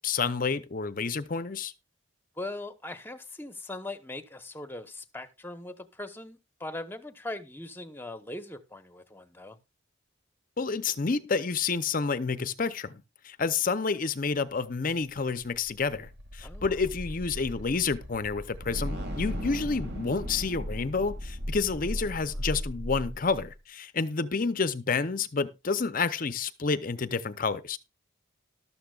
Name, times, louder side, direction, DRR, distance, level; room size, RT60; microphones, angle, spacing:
voice 1, 0.0-1.7 10.6-27.8, left 4 dB, 45° left, 0.6 m, -29 dB
voice 2, 2.4-9.6 16.4-16.7 21.7-22.4, left 2 dB, 10° left, 1.0 m, -40 dB
sound 1, 15.1-23.5, equal, 55° right, 2.2 m, -36 dB
13.0 x 12.5 x 2.4 m
head